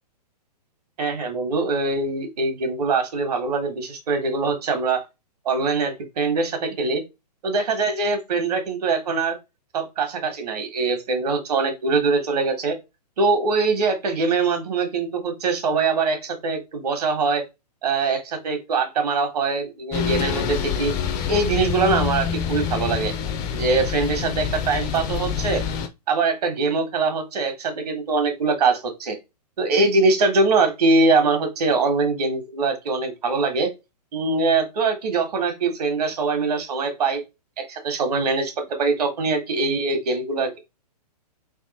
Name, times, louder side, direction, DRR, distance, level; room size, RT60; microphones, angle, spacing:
voice 1, 1.0-5.0 5.4-7.0 7.4-9.4 9.7-12.8 13.2-17.4 17.8-20.9 21.3-23.1 23.5-25.6 26.1-29.2 29.6-33.7 34.1-37.2 37.6-40.6, right 3 dB, 70° right, 1.5 m, -23 dB
sound 1, 19.9-25.9, left 7 dB, 15° left, 0.4 m, -26 dB
3.5 x 2.8 x 4.1 m
hypercardioid pair, 150°, 21 cm